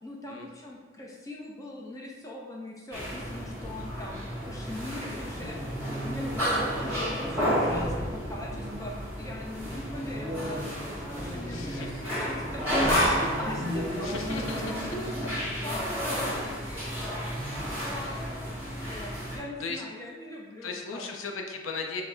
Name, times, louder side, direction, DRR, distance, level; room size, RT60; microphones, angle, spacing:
voice 1, 0.0-17.1 17.6-21.1, left 1 dB, 15° left, -2 dB, 0.5 m, -41 dB
sound 1, 2.9-19.4, equal, 10° right, 1.5 m, -31 dB
voice 2, 11.5-11.9 14.0-14.6 18.0-18.2 19.6-19.8 20.6-22.0, left 4 dB, 75° left, 3 dB, 0.5 m, -36 dB
5.7 x 2.0 x 3.8 m, 1.3 s
head